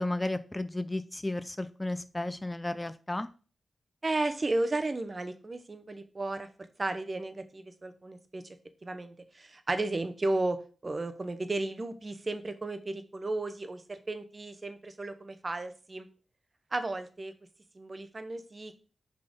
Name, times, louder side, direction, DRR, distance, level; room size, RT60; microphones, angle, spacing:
voice 1, 0.0-3.3, left 2 dB, 20° left, 12 dB, 0.4 m, -33 dB
voice 2, 4.0-6.5 6.8-8.6 8.8-16.1 16.7-17.3 17.7-18.7, right 2 dB, 35° right, 10 dB, 0.8 m, -34 dB
5.7 x 3.8 x 5.2 m, 0.36 s
cardioid pair, 65°, 0 cm